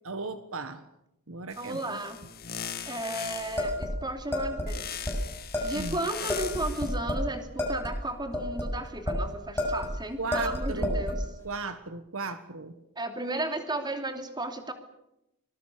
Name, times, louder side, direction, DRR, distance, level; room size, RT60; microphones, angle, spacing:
voice 1, 0.0-0.9 1.3-2.0 5.7-6.0 10.2-11.1 11.4-12.7, right 4 dB, 65° right, 10 dB, 1.5 m, -36 dB
sound 1, 1.5-3.7 4.7-7.0, left 8 dB, 45° left, 2.3 m, -39 dB
voice 2, 1.6-2.2 2.8-4.9 5.6-11.2 13.0-14.7, right 1 dB, 20° right, 6 dB, 2.9 m, -34 dB
sound 2, 3.6-4.7 5.0-5.1 5.5-5.9 6.3-7.3 7.6-9.2 9.6-9.9 10.3-11.2, left 1 dB, 10° left, 7.6 m, -30 dB
25.5 x 21.0 x 6.8 m, 0.85 s
head